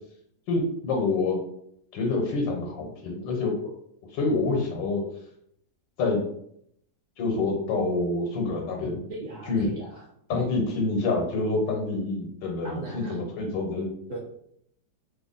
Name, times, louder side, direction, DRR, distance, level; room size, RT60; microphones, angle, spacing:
voice 1, 0.5-1.4 1.9-3.7 4.1-5.0 6.0-6.2 7.2-9.0 9.5-9.7 10.3-13.9, left 3 dB, 85° left, 1 dB, 1.6 m, -27 dB
voice 2, 9.1-10.0 12.6-13.3 14.1-14.2, right 2 dB, 60° right, -3 dB, 0.8 m, -38 dB
3.4 x 2.3 x 3.8 m, 0.72 s
omnidirectional pair, 1.9 m